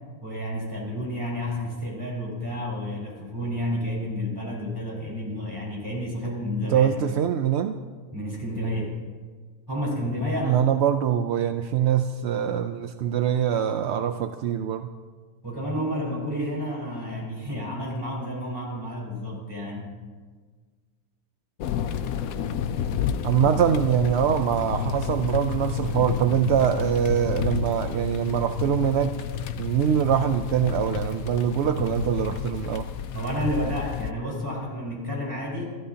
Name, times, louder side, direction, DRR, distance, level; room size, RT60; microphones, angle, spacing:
voice 1, 0.2-7.0 8.1-9.0 9.7-10.7 15.4-19.9 33.1-35.8, equal, 15° right, -4 dB, 4.6 m, -30 dB
voice 2, 6.7-7.8 10.5-14.9 23.2-29.1 29.6-32.9, right 9 dB, 65° right, 8 dB, 0.6 m, -23 dB
sound 1, 21.6-34.1, left 8 dB, 70° left, 1.1 m, -30 dB
27.5 x 12.5 x 2.8 m, 1.5 s
omnidirectional pair, 1.6 m